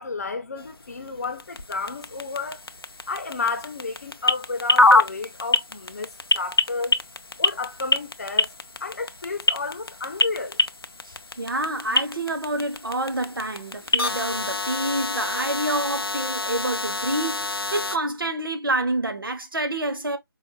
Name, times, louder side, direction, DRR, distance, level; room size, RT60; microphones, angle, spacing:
voice 1, 0.0-2.6 3.1-6.1 6.3-7.0 7.4-8.5 8.8-10.6, left 4 dB, 45° left, 0.8 m, -31 dB
sound 1, 0.6-18.0, left 2 dB, 85° left, 0.5 m, -26 dB
voice 2, 11.0-20.2, right 1 dB, 65° right, 1.1 m, -28 dB
4.9 x 2.4 x 2.3 m
figure-of-eight pair, 155°, 12 cm